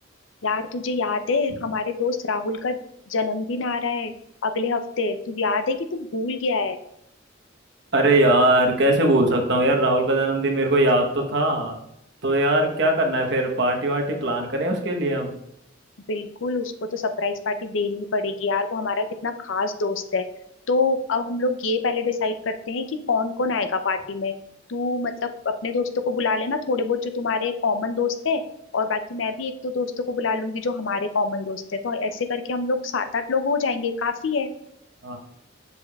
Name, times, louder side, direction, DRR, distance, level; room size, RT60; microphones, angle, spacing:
voice 1, 0.4-2.8 3.1-4.1 4.4-6.8 16.1-20.2 20.7-24.3 24.7-28.4 28.7-34.5, left 4 dB, 75° left, 8 dB, 0.6 m, -25 dB
voice 2, 7.9-11.7 12.2-15.3 35.0-35.2, right 1 dB, 60° right, 2 dB, 1.1 m, -20 dB
6.9 x 6.6 x 2.3 m, 0.77 s
head